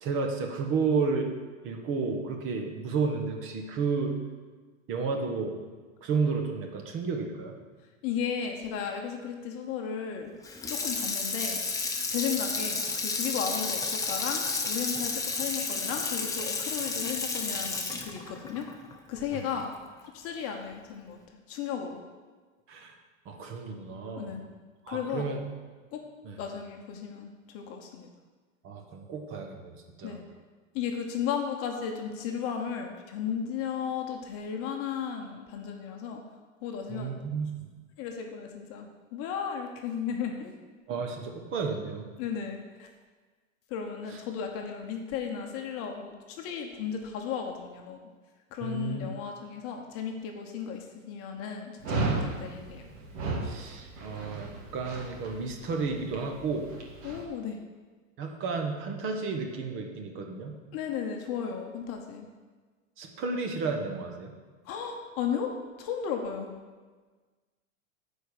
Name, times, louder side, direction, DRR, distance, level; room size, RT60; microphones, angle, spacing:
voice 1, 0.0-1.3 1.6-4.2 4.9-5.6 6.0-7.6 19.3-19.4 22.7-22.9 23.2-24.3 24.8-25.4 26.2-26.4 28.6-30.2 36.9-37.7 40.9-42.1 48.6-49.1 53.4-56.7 58.2-60.6 63.0-64.3, right 4 dB, 30° right, 3 dB, 1.2 m, -32 dB
voice 2, 8.0-10.3 10.7-11.6 12.1-18.7 19.1-19.7 20.1-22.0 24.2-24.4 24.9-25.3 25.9-26.0 26.4-28.1 30.0-30.2 30.7-36.2 36.6-37.1 38.0-40.5 42.2-42.9 43.7-48.0 48.5-52.8 57.0-57.6 60.7-62.3 64.6-66.5, left 7 dB, 35° left, 3 dB, 1.0 m, -35 dB
Water tap faucet / Sink (filling or washing), 10.4-19.6 20.0-20.1, left 4 dB, 10° left, 0.7 m, -32 dB
Dog, 51.8-57.2, right 3 dB, 55° right, 2.0 m, -34 dB
9.1 x 4.6 x 6.8 m, 1.4 s
hypercardioid pair, 130°, 40 cm